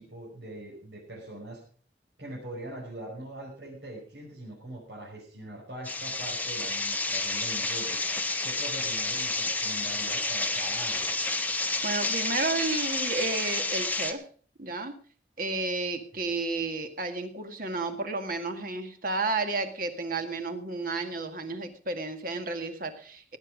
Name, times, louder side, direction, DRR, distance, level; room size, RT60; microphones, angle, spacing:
voice 1, 0.0-1.6 2.2-8.0 8.4-11.1 16.1-16.3, right 1 dB, 80° right, -4 dB, 5.4 m, -42 dB
sound 1, 5.8-14.1, left 2 dB, 10° left, 0.9 m, -30 dB
voice 2, 11.8-14.2 14.6-15.0 15.4-23.4, right 3 dB, 50° right, 7 dB, 1.9 m, -32 dB
17.0 x 10.0 x 5.1 m, 0.43 s
head